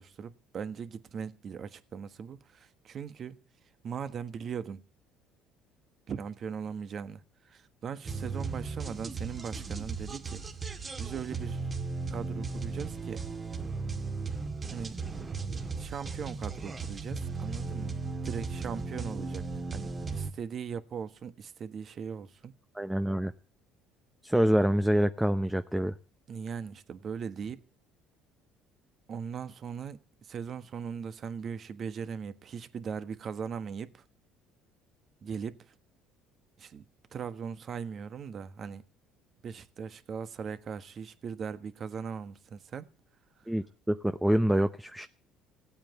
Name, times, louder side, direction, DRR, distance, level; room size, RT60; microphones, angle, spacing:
voice 1, 0.0-3.4 3.8-4.8 6.1-10.4 11.0-11.6 12.1-13.2 14.7-15.0 15.8-18.0 18.2-19.5 19.7-22.5 26.3-27.6 29.1-34.0 35.2-35.7 36.6-36.8 37.1-38.8 39.4-42.9 43.4-43.5, right 6 dB, 45° right, 1.4 m, -39 dB
sound 1, 8.0-20.3, right 4 dB, 25° right, 2.0 m, -36 dB
voice 2, 22.7-23.3 24.2-26.0 43.5-45.1, equal, 5° right, 0.8 m, -26 dB
16.5 x 8.7 x 9.4 m
supercardioid pair, 100°, 0 cm